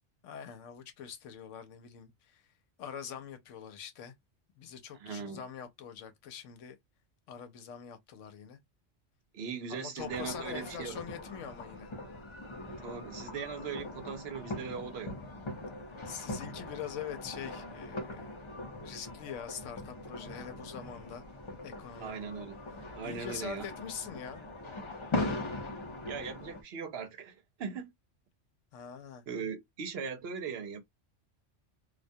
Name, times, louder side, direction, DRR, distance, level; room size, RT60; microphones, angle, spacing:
voice 1, 0.2-2.4 2.8-4.1 4.6-6.8 7.3-8.6 9.7-11.9 16.0-21.2 21.6-22.3 23.0-24.4 28.7-29.2, left 8 dB, 90° left, 1.0 m, -44 dB
voice 2, 5.0-5.4 9.3-11.0 12.7-15.2 22.0-22.6 22.9-23.7 26.1-27.9 29.3-30.8, right 6 dB, 65° right, 0.8 m, -39 dB
sound 1, 10.0-26.6, left 2 dB, 35° left, 0.6 m, -41 dB
2.3 x 2.2 x 2.6 m
omnidirectional pair, 1.2 m